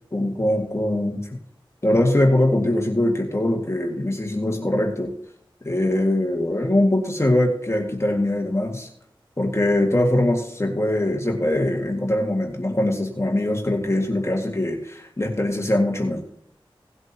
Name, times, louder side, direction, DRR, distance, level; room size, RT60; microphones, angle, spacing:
voice 1, 0.1-1.2 1.8-5.1 5.6-8.9 9.4-16.2, left 1 dB, 30° left, 1 dB, 2.0 m, -22 dB
18.0 x 7.8 x 2.9 m, 0.69 s
wide cardioid pair, 70°, 9 cm